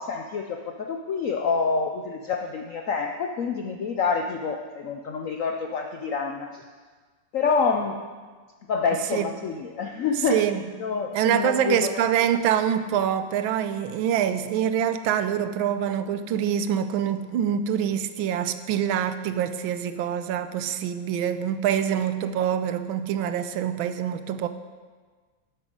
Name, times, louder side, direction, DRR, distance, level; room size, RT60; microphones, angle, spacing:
voice 1, 0.0-6.6 7.3-8.0 8.7-10.5 10.8-12.0, left 5 dB, 75° left, 3 dB, 0.7 m, -27 dB
voice 2, 10.3-10.6 11.1-24.5, right 9 dB, 90° right, 10 dB, 1.4 m, -25 dB
12.0 x 7.5 x 5.2 m, 1.5 s
omnidirectional pair, 2.2 m